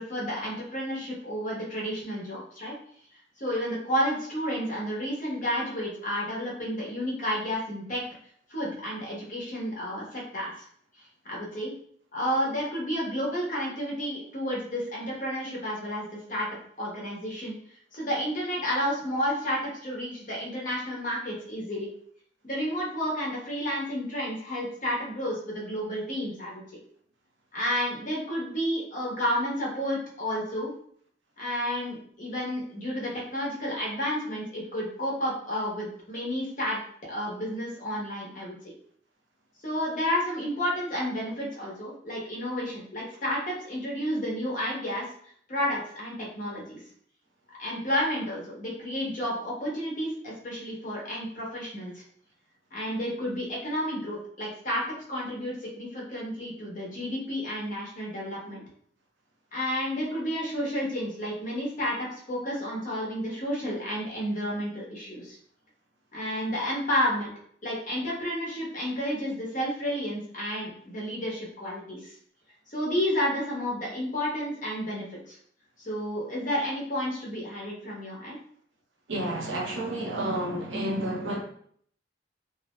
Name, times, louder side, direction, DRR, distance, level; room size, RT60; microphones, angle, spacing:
voice 1, 0.0-2.7 3.4-8.0 8.5-10.7 11.2-11.7 12.1-16.5 16.8-17.5 17.9-21.9 22.4-26.6 27.5-30.7 31.4-36.8 37.1-38.6 39.6-46.8 47.6-52.0 52.7-54.8 55.1-58.6 59.5-65.4 66.1-67.3 67.6-72.1 72.7-75.4 75.8-78.4, equal, 40° left, -4 dB, 0.8 m, -31 dB
voice 2, 79.1-81.4, right 1 dB, 75° right, 0 dB, 0.6 m, -30 dB
2.6 x 2.0 x 3.0 m, 0.62 s
head